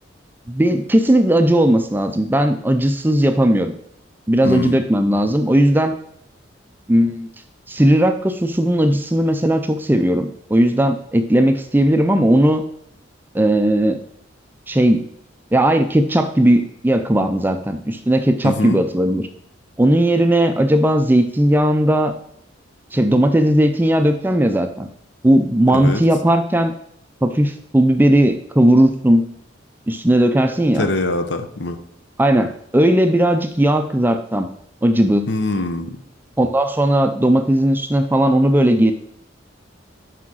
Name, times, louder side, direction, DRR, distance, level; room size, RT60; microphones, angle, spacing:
voice 1, 0.5-3.7 4.3-5.9 6.9-7.3 7.7-12.6 13.3-14.0 14.7-15.0 15.5-19.3 19.8-22.1 22.9-24.9 25.2-26.7 27.2-29.3 29.9-30.9 32.2-34.5 34.8-35.3 36.4-38.9, right 1 dB, 10° right, 8 dB, 0.4 m, -16 dB
voice 2, 4.4-4.8 18.4-18.8 25.7-26.0 30.7-31.8 35.3-36.0, left 2 dB, 65° left, 8 dB, 0.8 m, -23 dB
6.0 x 5.0 x 6.2 m, 0.70 s
head